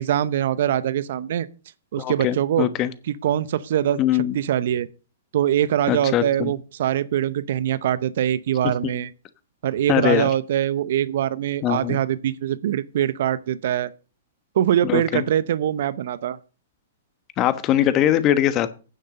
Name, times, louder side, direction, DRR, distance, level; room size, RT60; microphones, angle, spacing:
voice 1, 0.0-1.5 1.9-2.7 3.1-4.9 5.3-9.1 9.6-13.9 14.5-16.4, right 11 dB, 60° right, 0.7 m, -23 dB
voice 2, 2.0-2.9 4.0-4.3 5.9-6.5 8.8-8.9 9.9-10.3 11.6-12.0 14.8-15.2 17.4-18.7, left 12 dB, 35° left, 1.2 m, -21 dB
9.4 x 6.6 x 6.5 m
hypercardioid pair, 115°, 0 cm